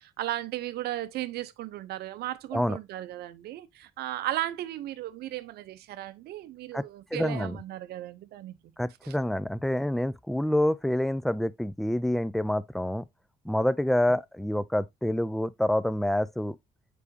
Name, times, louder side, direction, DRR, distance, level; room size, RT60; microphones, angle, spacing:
voice 1, 0.0-8.6 9.0-9.1, right 14 dB, 70° right, 0.7 m, -35 dB
voice 2, 7.1-7.6 8.8-13.0 13.5-16.6, left 1 dB, ahead, 0.3 m, -27 dB
7.1 x 4.8 x 2.7 m
cardioid pair, 110°, 17 cm